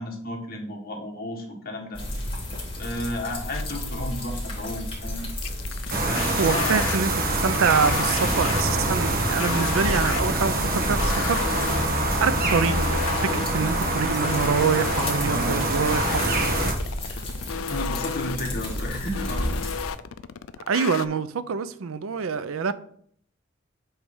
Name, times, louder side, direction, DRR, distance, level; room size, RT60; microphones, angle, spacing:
voice 1, 0.0-2.0 2.8-5.2 6.1-6.8 15.3-15.6 17.7-19.5, left 1 dB, 50° left, 1.7 m, -32 dB
sound 1, 1.9-19.9, left 1 dB, 25° left, 2.1 m, -33 dB
sound 2, 3.5-3.9 5.4-21.1, left 7 dB, 90° left, 0.4 m, -33 dB
sound 3, 5.9-16.7, right 2 dB, 45° right, 1.2 m, -25 dB
voice 2, 6.4-11.4 12.2-12.8 13.2-16.3 20.7-22.7, right 5 dB, 85° right, 0.5 m, -25 dB
7.8 x 3.3 x 5.5 m
head